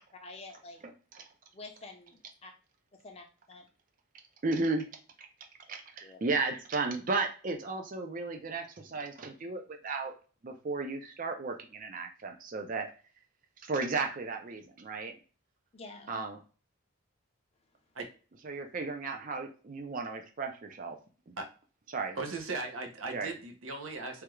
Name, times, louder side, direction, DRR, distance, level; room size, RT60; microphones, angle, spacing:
voice 1, 0.2-0.8 1.5-2.5 3.0-3.6 6.0-6.2 15.7-16.2, left 3 dB, 30° left, 4 dB, 0.5 m, -48 dB
voice 2, 0.8-1.2 4.4-4.9 5.7-10.2 10.4-12.9 13.7-15.1 16.1-16.4 18.4-21.0 21.3-21.4 21.9-22.2 23.1-23.3, right 3 dB, 40° right, 4 dB, 0.4 m, -34 dB
voice 3, 22.2-24.2, right 3 dB, 75° right, 3 dB, 0.7 m, -38 dB
3.3 x 2.3 x 3.0 m, 0.37 s
head